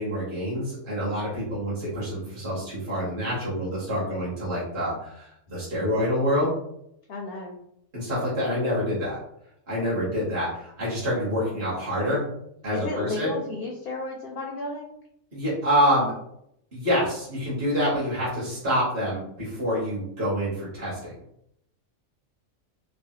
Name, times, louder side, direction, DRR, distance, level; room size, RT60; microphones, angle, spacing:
voice 1, 0.0-6.5 7.9-9.2 9.7-12.2 12.6-13.3 15.3-16.1 16.7-21.2, equal, 45° right, -8 dB, 1.2 m, -27 dB
voice 2, 7.1-7.6 12.7-15.0, left 2 dB, 65° left, -1 dB, 0.6 m, -32 dB
3.2 x 2.1 x 2.7 m, 0.76 s
omnidirectional pair, 1.4 m